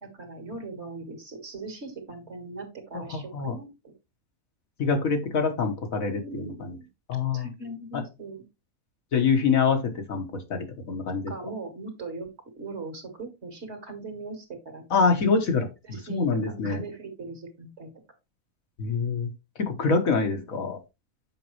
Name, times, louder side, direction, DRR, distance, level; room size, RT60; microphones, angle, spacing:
voice 1, 0.0-3.9 6.1-6.9 7.3-8.4 11.3-12.3 12.6-14.9 15.8-17.9 19.9-20.3, right 3 dB, 55° right, 5 dB, 1.9 m, -39 dB
voice 2, 2.9-3.5 4.8-6.7 7.1-7.5 7.9-8.0 9.1-11.3 14.9-15.7 16.1-16.8 18.8-19.3 19.6-20.8, left 5 dB, 80° left, 4 dB, 1.7 m, -25 dB
7.6 x 5.2 x 3.1 m, 0.25 s
omnidirectional pair, 1.4 m